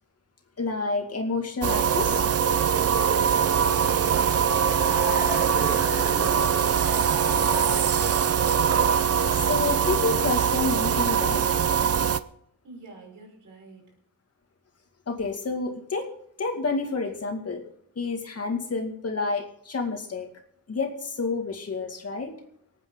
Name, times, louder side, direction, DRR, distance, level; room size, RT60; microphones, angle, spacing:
voice 1, 0.6-2.2 9.5-11.4 15.1-16.1 16.4-17.6 18.0-20.3 20.7-22.4, left 4 dB, 45° left, 3 dB, 2.3 m, -29 dB
sound 1, 1.6-12.2, right 7 dB, 45° right, 0.6 m, -22 dB
sound 2, 2.7-8.5, right 1 dB, 10° right, 1.8 m, -37 dB
voice 2, 12.6-13.9, right 3 dB, 65° right, 1 dB, 5.1 m, -47 dB
25.0 x 9.0 x 3.9 m, 0.69 s
wide cardioid pair, 165°, 33 cm